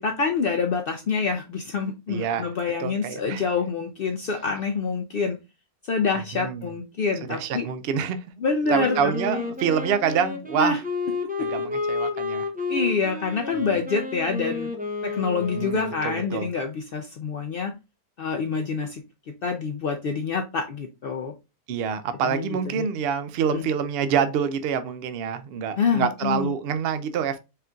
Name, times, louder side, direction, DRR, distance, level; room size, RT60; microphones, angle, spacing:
voice 1, 0.0-5.4 5.8-7.7 8.4-9.4 10.6-10.8 11.4-11.5 12.7-14.7 15.0-17.7 18.2-21.3 22.2-22.9 23.5-23.7 25.8-26.5, left 5 dB, 85° left, 0.5 m, -27 dB
voice 2, 2.1-2.5 2.8-3.5 6.3-6.7 7.3-8.2 8.7-10.8 11.4-12.5 13.6-13.7 15.5-16.5 21.7-27.4, right 7 dB, 70° right, 0.5 m, -26 dB
Wind instrument woodwind instrument, 8.6-16.4, left 4 dB, 10° right, 0.5 m, -31 dB
4.4 x 3.8 x 2.3 m
omnidirectional pair, 1.6 m